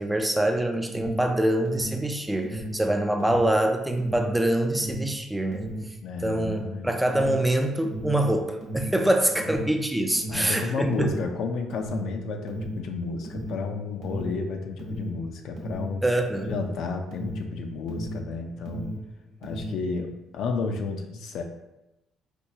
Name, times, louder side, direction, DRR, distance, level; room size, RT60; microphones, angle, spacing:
voice 1, 0.0-5.7 6.2-11.1 16.0-16.6, right 1 dB, 10° right, 4 dB, 0.4 m, -25 dB
Alarm, 0.9-18.3 18.6-19.9, right 1 dB, 75° right, 0.9 m, -35 dB
voice 2, 6.0-6.9 10.3-16.0 16.5-18.9 19.4-21.4, left 4 dB, 70° left, 4 dB, 0.4 m, -32 dB
4.4 x 2.3 x 2.7 m, 0.94 s
cardioid pair, 100°, 0 cm